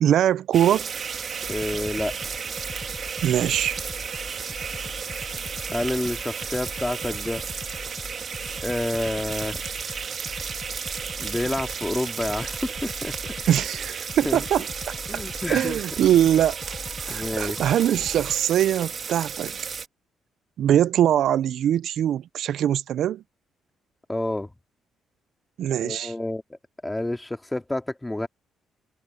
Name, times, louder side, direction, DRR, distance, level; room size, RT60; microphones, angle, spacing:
voice 1, 0.0-0.9 3.2-3.8 13.5-14.6 15.5-16.8 17.0-19.5 20.6-23.2 25.6-26.1, right 11 dB, 70° right, 0.4 m, -22 dB
sound 1, 0.5-19.9, right 6 dB, 50° right, 2.1 m, -33 dB
sound 2, 1.4-18.4, left 4 dB, 30° left, 7.7 m, -40 dB
voice 2, 1.5-2.2 5.7-7.4 8.6-9.8 11.2-13.1 14.2-14.4 15.1-15.8 17.1-17.6 24.1-24.5 25.8-28.3, left 1 dB, 10° left, 2.4 m, -29 dB
cardioid pair, 90°, 0 cm